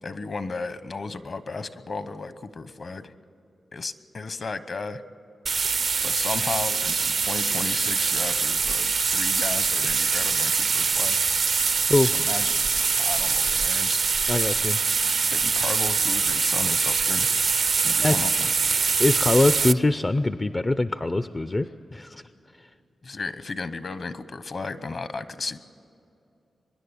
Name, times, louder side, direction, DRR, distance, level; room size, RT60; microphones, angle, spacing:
voice 1, 0.0-3.1 3.7-5.0 6.0-11.2 12.1-12.5 13.0-14.0 15.3-17.3 17.7-18.5 23.0-25.6, left 3 dB, 45° left, 13 dB, 0.9 m, -34 dB
sound 1, 5.5-19.7, right 5 dB, 55° right, 0.4 m, -23 dB
voice 2, 14.3-14.8 18.0-18.5 19.0-22.2, left 2 dB, 25° left, 12 dB, 0.4 m, -23 dB
24.5 x 11.0 x 9.8 m, 2.6 s
wide cardioid pair, 125°, 0 cm